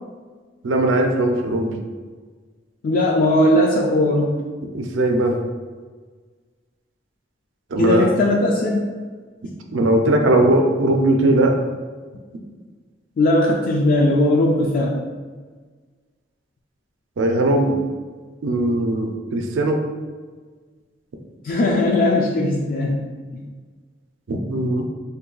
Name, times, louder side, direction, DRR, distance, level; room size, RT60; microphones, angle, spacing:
voice 1, 0.6-1.8 4.7-5.4 7.7-8.1 9.7-11.5 17.2-17.8 18.4-19.8 24.3-24.9, right 1 dB, 90° right, 3 dB, 0.4 m, -19 dB
voice 2, 2.8-4.4 7.8-8.9 13.2-14.9 21.4-23.0 23.3-23.4, left 1 dB, 50° left, -1 dB, 0.3 m, -18 dB
2.6 x 2.3 x 3.8 m, 1.5 s
head